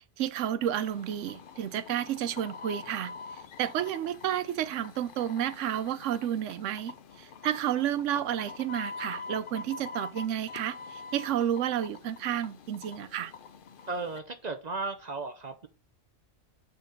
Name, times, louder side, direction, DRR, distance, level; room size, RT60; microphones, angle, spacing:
voice 1, 0.0-3.1 3.6-13.3, right 10 dB, 85° right, 1.0 m, -31 dB
sound 1, 0.6-14.2, left 4 dB, 55° left, 0.7 m, -45 dB
voice 2, 13.9-15.7, right 3 dB, 45° right, 0.6 m, -35 dB
6.7 x 4.1 x 5.2 m
omnidirectional pair, 1.2 m